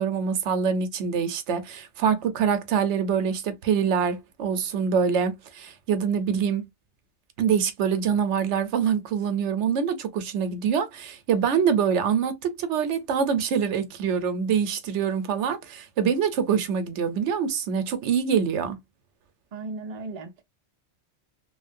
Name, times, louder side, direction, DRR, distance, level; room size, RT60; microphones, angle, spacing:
voice 1, 0.0-6.7 7.4-18.8, right 7 dB, 90° right, 1.0 m, -25 dB
voice 2, 19.5-20.4, right 3 dB, 45° right, 0.6 m, -36 dB
3.1 x 2.1 x 2.5 m
omnidirectional pair, 1.2 m